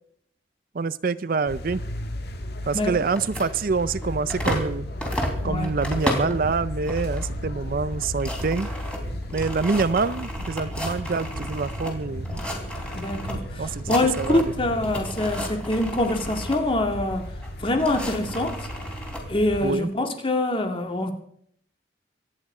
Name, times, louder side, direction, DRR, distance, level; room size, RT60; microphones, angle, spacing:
voice 1, 0.7-1.8 2.6-4.9 5.4-8.7 9.3-12.3 13.6-14.5 19.6-19.9, right 4 dB, 50° right, 16 dB, 0.5 m, -26 dB
sound 1, 1.4-19.7, left 1 dB, 60° left, 1.8 m, -35 dB
sound 2, 3.1-4.7 5.0-6.4 6.8-7.3 7.6-7.7 7.9-11.9 12.2-13.3 13.6-14.6 14.8-16.6 17.4-19.2, equal, 5° left, 3.2 m, -33 dB
sound 3, 3.7-15.1, right 1 dB, 70° right, 1.0 m, -38 dB
voice 2, 5.4-5.8 12.9-17.3 17.6-18.7 19.3-21.1, left 1 dB, 30° left, 5 dB, 2.0 m, -25 dB
24.5 x 9.7 x 4.9 m, 0.69 s
head